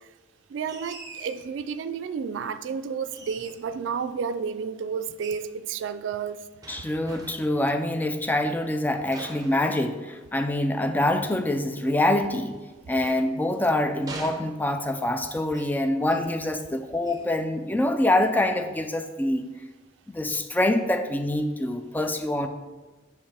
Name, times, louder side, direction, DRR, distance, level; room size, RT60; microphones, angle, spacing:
voice 1, 0.5-6.4, right 6 dB, 75° right, 12 dB, 0.3 m, -31 dB
sound 1, 0.7-1.5 3.1-3.8 5.2-5.5 6.6-7.6 9.1-10.3 12.5-13.7 14.1-15.0 15.5-15.8 16.1-16.4 17.0-17.3, right 2 dB, 20° right, 0.8 m, -43 dB
voice 2, 6.7-12.6 12.9-19.5 20.1-22.5, left 1 dB, 10° left, 7 dB, 0.3 m, -25 dB
6.5 x 5.4 x 3.4 m, 1.2 s
head